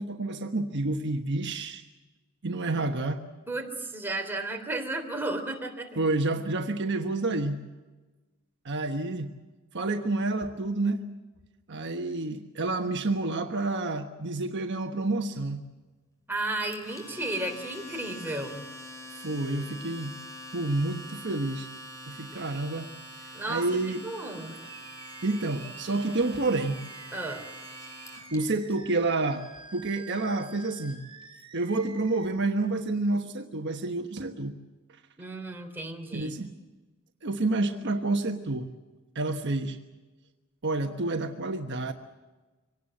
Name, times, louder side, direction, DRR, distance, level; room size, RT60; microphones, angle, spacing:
voice 1, 0.0-1.8 2.4-3.2 6.0-7.6 8.6-9.3 9.7-11.0 11.7-15.6 19.1-20.2 20.5-21.7 22.1-22.9 23.5-24.0 25.2-26.8 28.3-29.5 29.7-31.0 31.5-34.6 36.1-36.5 37.2-38.7 39.1-39.8 40.6-41.9, right 2 dB, 55° right, 5 dB, 1.2 m, -29 dB
voice 2, 3.5-6.0 16.3-18.7 22.3-22.4 23.3-24.5 27.1-27.4 35.2-36.3, right 2 dB, 10° right, 2 dB, 3.4 m, -33 dB
Domestic sounds home sounds, 16.7-28.4, equal, 15° left, 5.0 m, -44 dB
Animal, 24.3-32.3, right 4 dB, 25° right, 2.8 m, -49 dB
25.0 x 19.0 x 7.8 m, 1.2 s
head